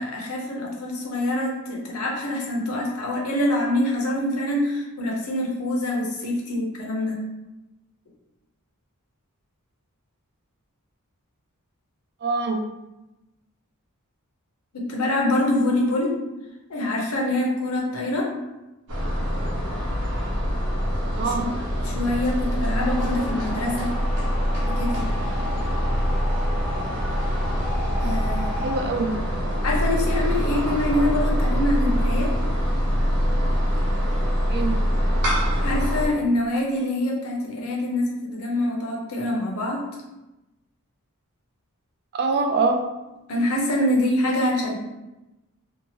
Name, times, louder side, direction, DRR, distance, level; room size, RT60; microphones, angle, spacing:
voice 1, 0.0-7.2 14.7-16.1 16.7-18.3 21.3-21.5 21.8-23.9 24.7-25.0 28.0-28.8 29.6-32.3 35.6-39.8 43.3-44.8, left 1 dB, 70° left, -1 dB, 0.7 m, -25 dB
voice 2, 12.2-12.6 21.2-21.5 28.6-29.1 34.5-34.7 42.1-42.8, right 4 dB, 45° right, 4 dB, 0.3 m, -23 dB
sound 1, 18.9-36.1, equal, 85° right, 0.7 m, -24 dB
sound 2, 22.8-28.8, left 1 dB, 5° right, 0.6 m, -34 dB
2.8 x 2.3 x 2.7 m, 1.0 s
head